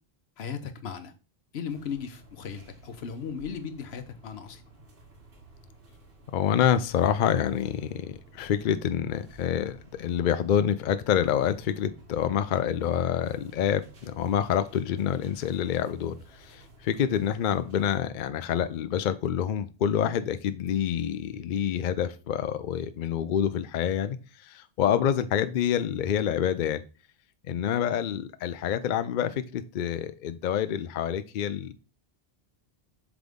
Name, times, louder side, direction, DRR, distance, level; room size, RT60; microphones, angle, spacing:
voice 1, 0.4-1.1 1.5-4.6, left 6 dB, 80° left, 1.0 m, -36 dB
sound 1, 1.7-18.0, right 2 dB, 60° right, 1.4 m, -54 dB
voice 2, 6.3-26.8 27.5-31.7, left 9 dB, 60° left, 0.6 m, -27 dB
7.6 x 3.6 x 3.5 m
omnidirectional pair, 1.0 m